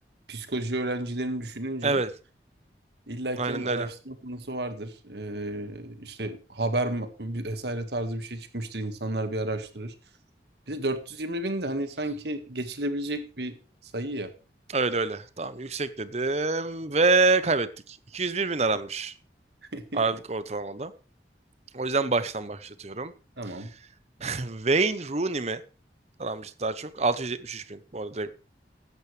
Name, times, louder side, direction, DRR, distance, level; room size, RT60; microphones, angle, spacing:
voice 1, 0.3-2.0 3.1-9.9 10.7-13.6 13.8-14.3 19.7-20.0 23.4-23.7, right 1 dB, 70° right, 1.8 m, -32 dB
voice 2, 3.4-3.9 14.7-19.1 19.9-20.9 21.7-23.1 23.5-23.6 24.2-25.6 26.2-28.3, right 3 dB, 35° right, 0.9 m, -27 dB
15.0 x 11.0 x 3.4 m
head